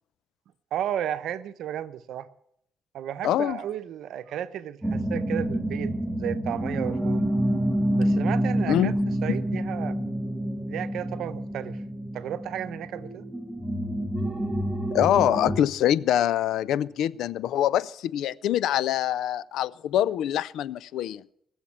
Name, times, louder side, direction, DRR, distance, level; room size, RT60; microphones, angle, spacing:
voice 1, 0.7-2.3 2.9-7.3 8.0-8.9 9.2-10.0 10.7-11.8 12.1-13.3, right 10 dB, 75° right, 0.9 m, -33 dB
voice 2, 3.2-3.6 8.7-8.9 9.3-9.4 14.9-21.2, left 11 dB, 85° left, 0.5 m, -24 dB
sound 1, 4.8-15.6, right 1 dB, ahead, 1.5 m, -28 dB
19.5 x 7.3 x 8.6 m
cardioid pair, 90°, 0 cm